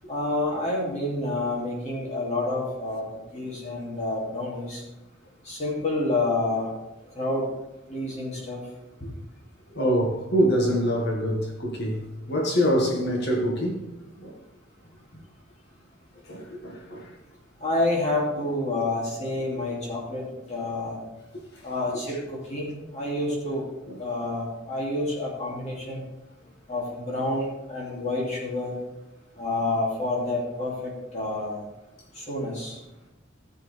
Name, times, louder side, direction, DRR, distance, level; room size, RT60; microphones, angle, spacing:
voice 1, 0.1-3.0 3.3-4.8 5.4-6.7 7.1-7.5 7.9-8.6 17.6-21.0 21.6-23.6 24.0-26.0 26.7-28.8 29.4-31.6 32.1-32.8, left 2 dB, 35° left, 2.8 m, -28 dB
voice 2, 9.7-13.8 14.2-14.4 16.3-17.1 23.9-24.0, equal, 60° left, 1.9 m, -25 dB
14.5 x 7.7 x 3.5 m
head